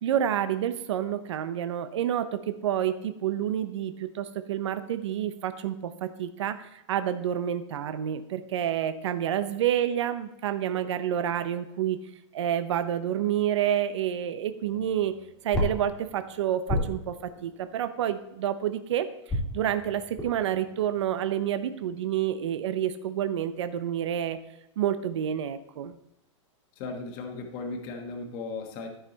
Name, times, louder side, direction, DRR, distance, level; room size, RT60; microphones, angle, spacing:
voice 1, 0.0-12.0 12.3-15.1 15.4-24.4 24.8-26.0, right 10 dB, 65° right, 10 dB, 0.8 m, -29 dB
sound 1, 14.6-18.7 19.3-22.3, left 1 dB, 5° left, 2.0 m, -35 dB
voice 2, 26.8-28.9, left 3 dB, 30° left, 3 dB, 1.3 m, -36 dB
13.5 x 5.7 x 4.0 m, 0.84 s
supercardioid pair, 170°, 16 cm